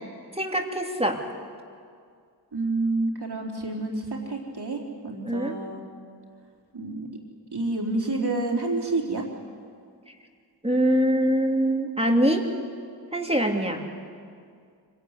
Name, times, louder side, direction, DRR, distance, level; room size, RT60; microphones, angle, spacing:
voice 1, 0.3-1.2 5.2-5.6 10.6-12.4 13.1-13.8, equal, 15° right, 2 dB, 2.9 m, -23 dB
voice 2, 2.5-5.8 6.7-7.1 7.5-9.2, right 2 dB, 65° right, 0 dB, 4.0 m, -28 dB
25.0 x 17.5 x 9.8 m, 2.2 s
cardioid pair, 40°, 42 cm